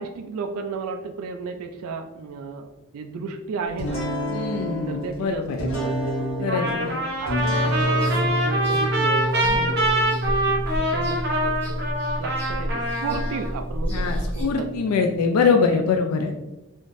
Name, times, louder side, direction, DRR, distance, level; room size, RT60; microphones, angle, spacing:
voice 1, 0.0-4.1 4.9-6.9 7.2-11.8 12.2-14.7 15.6-15.9, right 4 dB, 75° right, 6 dB, 0.3 m, -33 dB
sound 1, 3.8-15.2, equal, 60° left, 1.2 m, -29 dB
voice 2, 4.3-5.7 6.4-7.0 9.4-9.7 13.9-16.3, left 5 dB, 80° left, 3 dB, 0.3 m, -23 dB
Trumpet, 6.5-13.5, right 1 dB, 45° right, 0.7 m, -25 dB
sound 2, 7.6-14.4, equal, 5° left, 0.8 m, -32 dB
3.6 x 2.5 x 2.5 m, 0.99 s
head